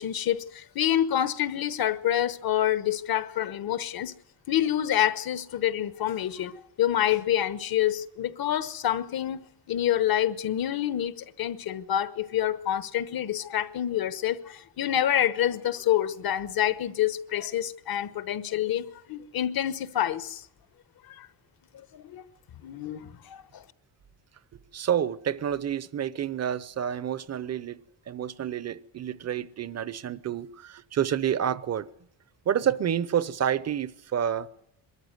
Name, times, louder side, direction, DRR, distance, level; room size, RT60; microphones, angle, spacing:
voice 1, 0.0-4.1 4.5-9.4 9.7-20.4 21.0-21.3 21.7-22.2 22.6-23.6, left 11 dB, 55° left, 1.2 m, -27 dB
voice 2, 24.5-27.8 28.1-31.9 32.5-34.5, right 9 dB, 35° right, 0.8 m, -29 dB
22.0 x 14.0 x 9.4 m
cardioid pair, 150°, 43 cm